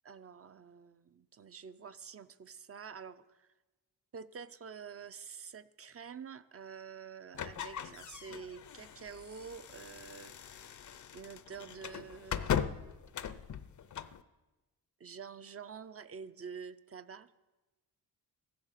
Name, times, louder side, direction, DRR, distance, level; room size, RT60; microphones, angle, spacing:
voice 1, 0.0-3.5 4.1-10.8 11.1-12.7 15.0-17.3, right 6 dB, 35° right, 12 dB, 0.5 m, -48 dB
sound 1, 7.3-14.2, left 8 dB, 45° left, 0.6 m, -39 dB
14.5 x 11.0 x 6.6 m, 1.1 s
wide cardioid pair, 155°, 41 cm